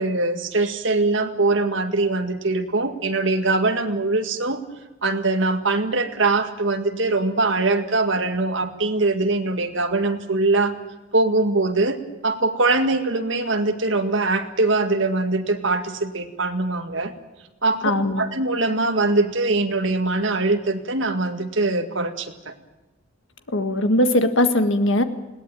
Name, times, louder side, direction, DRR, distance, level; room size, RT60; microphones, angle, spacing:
voice 1, 0.0-4.6 5.0-10.7 11.1-12.0 12.2-17.1 17.6-17.9 18.2-22.5, right 2 dB, 65° right, 6 dB, 1.9 m, -22 dB
voice 2, 17.8-18.2 23.5-25.0, left 1 dB, 65° left, 9 dB, 1.6 m, -20 dB
21.0 x 18.0 x 9.1 m, 1.1 s
head